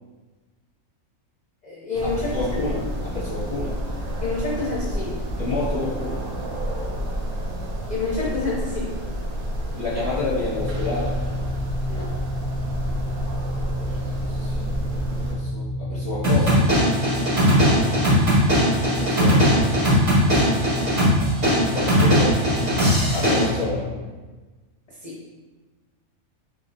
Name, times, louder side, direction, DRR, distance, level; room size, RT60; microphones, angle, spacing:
voice 1, 1.6-2.6 4.2-5.1 7.9-8.9 11.9-12.1 17.7-18.0 20.4-20.5 25.0-25.2, left 3 dB, 40° left, -6 dB, 0.6 m, -28 dB
sound 1, 1.9-15.4, equal, 85° right, 1.3 m, -30 dB
voice 2, 2.2-3.8 5.4-6.3 9.7-11.2 13.9-14.7 15.3-16.6 18.9-19.7 21.7-22.4 23.1-23.9, left 2 dB, 10° right, -16 dB, 1.3 m, -29 dB
sound 2, 10.5-23.8, left 1 dB, 45° right, 0.6 m, -30 dB
sound 3, 16.2-23.4, equal, 70° right, 2.1 m, -19 dB
3.8 x 3.6 x 2.7 m, 1.3 s
omnidirectional pair, 1.5 m